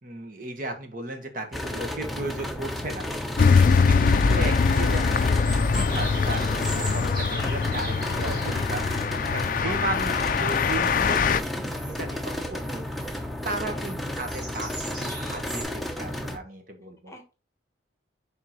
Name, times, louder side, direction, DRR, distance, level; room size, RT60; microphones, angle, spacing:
voice 1, 0.0-3.1 3.8-8.8 9.1-17.1, right 2 dB, 45° right, 5 dB, 1.3 m, -35 dB
sound 1, 1.5-16.4, left 1 dB, ahead, 0.7 m, -33 dB
sound 2, 2.2-2.5 3.5-3.7 4.7-8.6 9.4-9.5 9.8-15.6, right 2 dB, 20° right, 3.9 m, -41 dB
voice 2, 3.3-3.7 8.5-8.7 9.6-10.1 13.6-13.9 17.1-17.4, equal, 15° left, 5 dB, 1.1 m, -44 dB
sound 3, 3.4-11.4, left 5 dB, 45° left, 0.4 m, -23 dB
10.5 x 3.7 x 3.1 m, 0.32 s
head